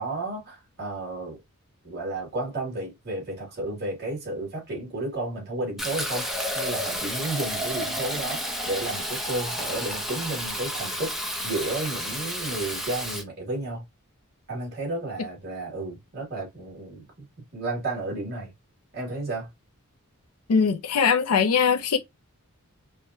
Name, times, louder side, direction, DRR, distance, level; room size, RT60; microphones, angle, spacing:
voice 1, 0.0-1.4 1.8-6.3 6.5-11.2 11.4-13.8 14.5-17.3 17.5-18.5 18.9-19.5, right 2 dB, 45° right, 2.3 m, -32 dB
Fill (with liquid), 5.8-13.2, equal, ahead, 0.6 m, -31 dB
voice 2, 20.5-22.0, left 6 dB, 80° left, 0.5 m, -21 dB
4.8 x 2.1 x 2.7 m
head